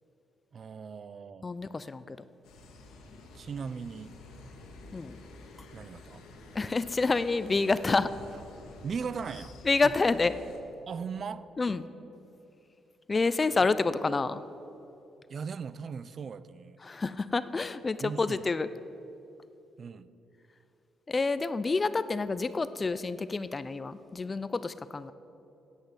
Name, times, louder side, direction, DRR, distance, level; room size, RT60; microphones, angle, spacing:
voice 1, 0.5-1.5 3.3-4.2 5.7-6.2 8.8-9.9 10.9-11.6 15.3-16.8 18.0-18.4 19.8-20.1, right 6 dB, 50° right, 16 dB, 0.4 m, -38 dB
voice 2, 1.4-2.2 4.9-5.2 6.5-8.1 9.6-10.3 11.6-11.9 13.1-14.4 16.8-18.7 21.1-25.1, left 3 dB, 30° left, 14 dB, 0.4 m, -28 dB
sound 1, 2.4-10.6, left 2 dB, 90° left, 1.7 m, -49 dB
sound 2, 8.3-8.6 9.0-9.1 12.9-13.6, right 5 dB, 65° right, 0.9 m, -54 dB
9.6 x 8.3 x 8.1 m, 2.8 s
cardioid pair, 90°, 0 cm